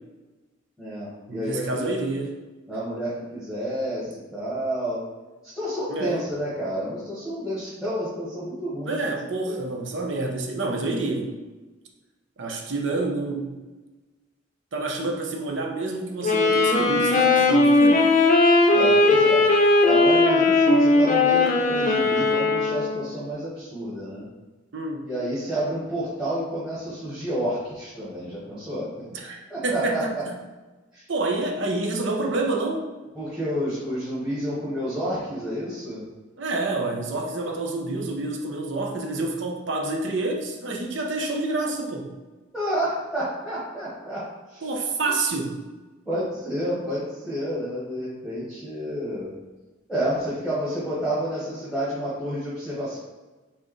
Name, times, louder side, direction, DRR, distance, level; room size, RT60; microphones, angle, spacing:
voice 1, 0.8-1.9 2.7-5.0 5.5-9.0 9.5-9.6 18.7-19.4 19.8-24.3 25.0-29.1 29.5-30.2 30.9-31.0 33.1-36.0 42.5-44.6 46.0-49.3 49.9-53.0, equal, 5° right, -12 dB, 1.4 m, -30 dB
voice 2, 1.3-2.4 5.9-6.2 8.8-11.3 12.4-13.5 14.7-18.0 24.7-25.1 29.1-30.1 31.1-32.8 36.4-42.1 44.6-45.6, right 2 dB, 65° right, 1 dB, 0.7 m, -28 dB
Wind instrument woodwind instrument, 16.2-23.1, left 2 dB, 40° left, 0.6 m, -18 dB
4.7 x 3.6 x 3.1 m, 1.2 s
head